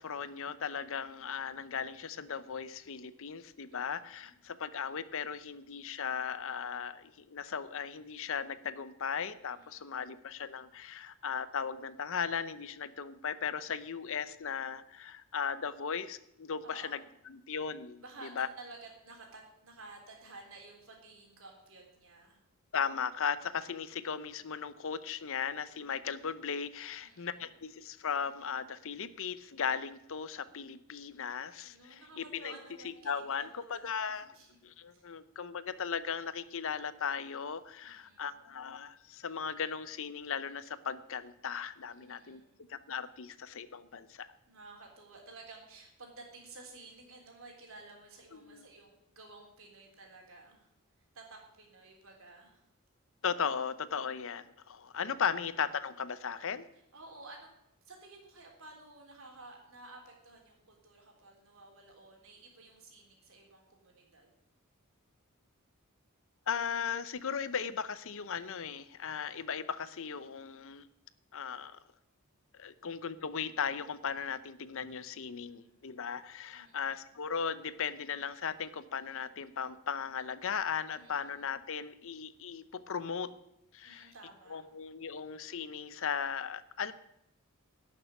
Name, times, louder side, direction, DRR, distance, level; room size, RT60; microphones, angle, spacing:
voice 1, 0.0-18.0 18.4-18.5 22.7-32.5 32.8-34.3 34.6-42.4 42.7-44.3 48.3-48.6 53.2-56.6 66.5-70.8 71.3-71.8 72.6-83.3 83.7-84.1 84.5-86.9, left 6 dB, 65° left, 15 dB, 0.7 m, -37 dB
voice 2, 3.7-4.4 9.5-10.1 16.6-17.1 18.0-22.4 27.0-27.5 31.6-34.6 34.9-35.0 37.8-38.4 41.9-42.6 44.5-50.7 51.1-52.6 56.9-57.5 57.8-64.3 75.2-75.8 76.5-76.9 80.9-81.4 83.8-84.6, right 3 dB, 65° right, 1 dB, 3.6 m, -53 dB
12.0 x 6.7 x 9.4 m, 0.82 s
head